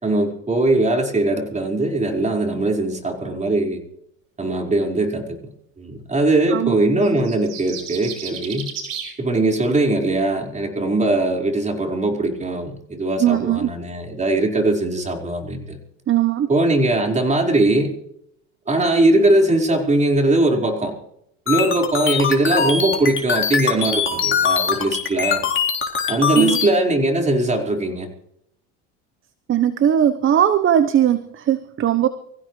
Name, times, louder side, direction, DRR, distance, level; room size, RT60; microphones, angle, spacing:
voice 1, 0.0-3.8 4.4-5.4 5.8-8.7 9.2-15.8 16.5-17.9 18.7-20.9 21.5-25.4 26.1-28.1, right 2 dB, 20° right, 1 dB, 4.9 m, -20 dB
sound 1, 7.0-9.1, right 8 dB, 70° right, 5.7 m, -33 dB
voice 2, 13.2-13.7 16.1-16.5 26.3-26.6 29.5-32.1, right 10 dB, 35° right, 12 dB, 1.0 m, -19 dB
sound 2, 21.5-26.7, left 6 dB, 35° left, 4.0 m, -22 dB
25.5 x 15.5 x 3.3 m, 0.74 s
hypercardioid pair, 85°, 34 cm